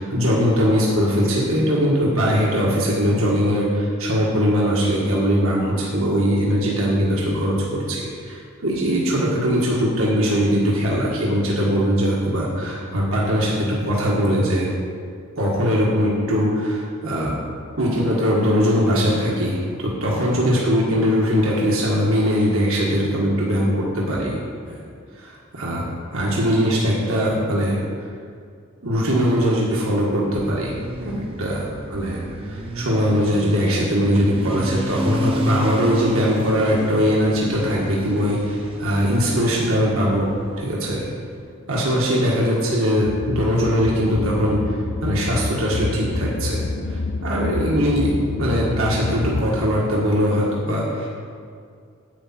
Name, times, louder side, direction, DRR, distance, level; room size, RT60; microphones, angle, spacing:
voice 1, 0.0-14.7 15.4-17.3 17.8-24.4 24.7-24.8 25.1-25.8 26.1-28.1 28.8-31.6 31.9-40.3 40.6-41.1 41.7-51.1, equal, 75° right, -4 dB, 1.7 m, -21 dB
Motorcycle, 29.8-41.4, right 1 dB, 25° right, 0.7 m, -32 dB
sound 1, 43.0-49.4, left 3 dB, 70° left, 0.5 m, -28 dB
10.0 x 8.7 x 4.3 m, 2.2 s
head